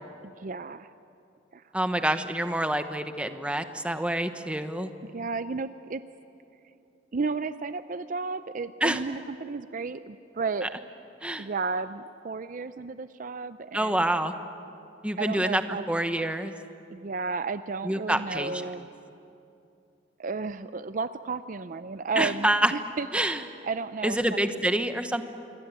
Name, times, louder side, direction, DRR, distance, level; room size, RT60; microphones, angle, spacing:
voice 1, 0.4-0.9 1.5-1.6 5.0-6.0 7.1-10.7 11.4-14.1 15.2-15.9 16.9-18.9 20.2-23.1 23.6-24.6, right 4 dB, 45° right, 12 dB, 0.5 m, -33 dB
voice 2, 1.7-4.9 8.8-9.0 11.2-11.5 13.7-14.3 15.0-15.6 15.9-16.5 17.8-18.6 22.2-22.7 23.1-23.4 24.0-25.2, right 1 dB, 5° right, 8 dB, 1.0 m, -27 dB
27.0 x 23.5 x 8.2 m, 2.7 s
head